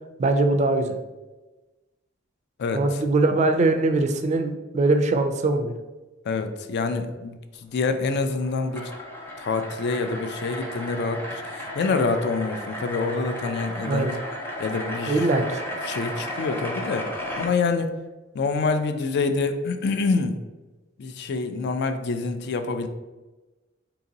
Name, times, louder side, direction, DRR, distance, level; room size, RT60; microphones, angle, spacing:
voice 1, 0.2-1.0 2.7-5.8 13.8-14.2 15.1-15.6, right 2 dB, 35° right, 7 dB, 0.3 m, -22 dB
voice 2, 2.6-3.0 6.2-8.9 9.4-14.1 14.6-15.3 15.8-17.1 17.4-17.9 18.3-20.4 21.0-22.9, left 4 dB, 55° left, 8 dB, 0.4 m, -26 dB
sound 1, 8.0-17.5, left 1 dB, 10° left, 0.6 m, -34 dB
2.9 x 2.7 x 3.9 m, 1.2 s
head